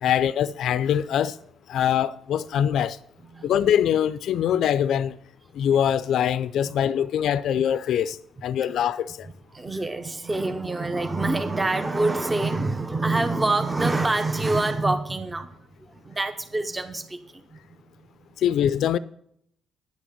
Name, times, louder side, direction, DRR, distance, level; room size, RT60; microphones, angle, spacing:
voice 1, 0.0-1.4 1.7-3.0 3.4-5.2 5.5-8.2 8.4-9.3 18.4-19.0, left 9 dB, 75° left, 0.4 m, -23 dB
voice 2, 9.5-15.5 15.8-17.6, right 2 dB, 20° right, 0.8 m, -26 dB
10.0 x 6.2 x 7.1 m
cardioid pair, 90°, 0 cm